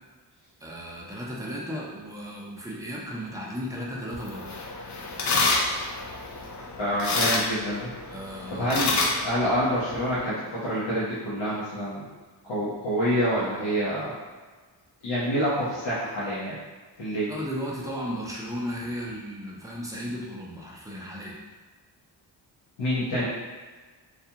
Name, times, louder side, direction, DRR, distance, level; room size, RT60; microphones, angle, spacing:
voice 1, 0.6-4.5 8.1-8.8 17.3-21.4, equal, 10° right, -5 dB, 0.5 m, -35 dB
sound 1, 4.1-10.2, left 3 dB, 45° left, 0.4 m, -29 dB
voice 2, 6.8-7.9 8.5-12.0 12.4-14.1 15.0-16.6 17.0-17.3 22.8-23.2, equal, 85° left, -10 dB, 0.9 m, -27 dB
2.4 x 2.3 x 2.8 m, 1.4 s
cardioid pair, 85°, 44 cm